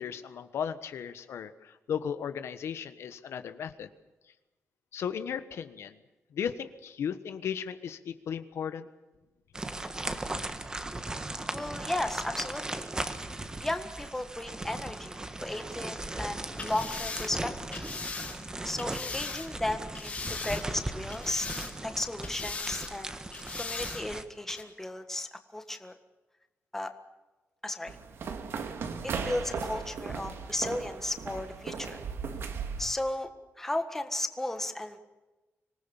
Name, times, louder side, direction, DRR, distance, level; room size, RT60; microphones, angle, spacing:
voice 1, 0.0-3.9 4.9-6.0 6.3-8.9, left 8 dB, 75° left, 11 dB, 1.3 m, -36 dB
sound 1, 9.5-24.2, right 2 dB, 15° right, 1.4 m, -38 dB
voice 2, 11.5-12.8 13.3-17.8 18.6-21.5 21.8-23.1 23.6-25.9 26.7-26.9 27.6-27.9 29.2-32.0 32.8-33.3 33.6-35.0, left 1 dB, 10° left, 7 dB, 1.6 m, -35 dB
sound 2, 16.5-19.5 19.9-20.8 21.1-21.9 22.2-22.9 23.3-24.0 24.5-24.6, left 4 dB, 30° left, 3.7 m, -39 dB
sound 3, 27.9-32.9, right 5 dB, 60° right, 2.2 m, -37 dB
26.0 x 19.0 x 7.2 m, 1.1 s
wide cardioid pair, 165°, 5 cm